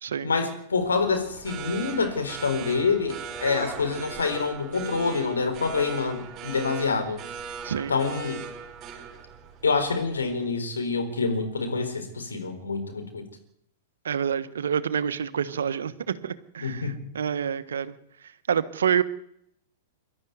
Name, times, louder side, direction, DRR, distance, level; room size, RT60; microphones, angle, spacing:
voice 1, 0.2-7.2 7.9-8.4 9.6-13.2 16.6-16.9, left 4 dB, 80° left, 7 dB, 4.3 m, -26 dB
sound 1, 0.8-10.4, right 6 dB, 35° right, 5.1 m, -39 dB
voice 2, 14.0-17.9 18.5-19.0, right 8 dB, 75° right, 14 dB, 1.2 m, -27 dB
24.0 x 12.5 x 9.5 m, 0.74 s
hypercardioid pair, 105°, 0 cm